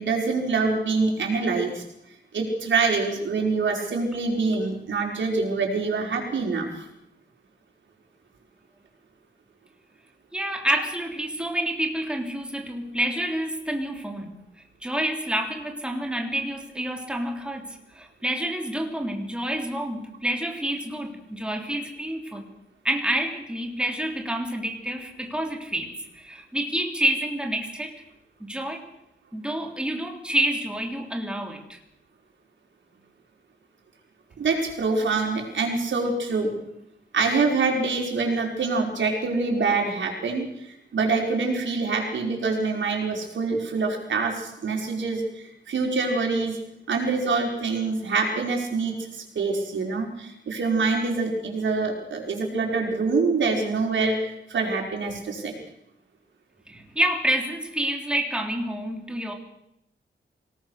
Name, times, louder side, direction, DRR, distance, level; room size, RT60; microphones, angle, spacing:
voice 1, 0.0-1.8 2.3-6.9 34.4-36.6 37.1-46.6 46.9-55.6, right 4 dB, 80° right, 2 dB, 5.2 m, -25 dB
voice 2, 10.3-14.3 14.8-22.4 22.8-28.0 28.4-28.8 29.3-31.8 56.7-59.3, right 1 dB, 5° right, 2 dB, 3.1 m, -28 dB
26.0 x 19.0 x 6.5 m, 0.81 s
wide cardioid pair, 150°, 19 cm